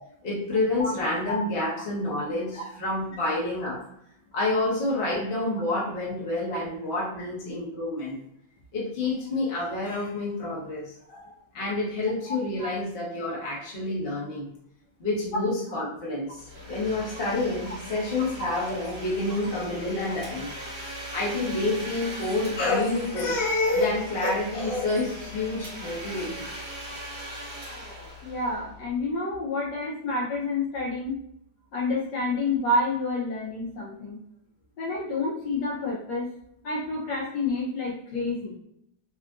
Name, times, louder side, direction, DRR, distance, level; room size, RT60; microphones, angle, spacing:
voice 1, 0.2-3.8 4.3-8.2 8.7-14.5 15.0-20.5 20.8-26.4, left 2 dB, 40° left, -5 dB, 0.9 m, -28 dB
Domestic sounds home sounds, 16.4-29.0, equal, 65° right, 1.4 m, -40 dB
voice 2, 28.2-31.2 31.7-34.2 34.8-36.2 36.6-38.5, left 2 dB, 70° left, -4 dB, 1.1 m, -29 dB
3.5 x 2.5 x 2.3 m, 0.76 s
omnidirectional pair, 2.1 m